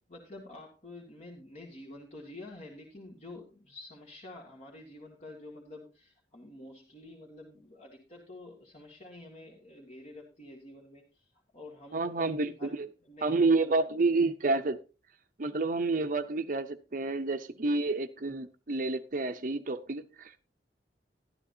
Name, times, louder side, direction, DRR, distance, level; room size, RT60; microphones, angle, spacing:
voice 1, 0.0-13.9 14.1-14.3, left 2 dB, 40° left, 2.1 m, -49 dB
voice 2, 11.9-12.9 13.2-14.8 15.4-20.4, right 3 dB, 50° right, 0.7 m, -29 dB
12.5 x 12.5 x 2.7 m
head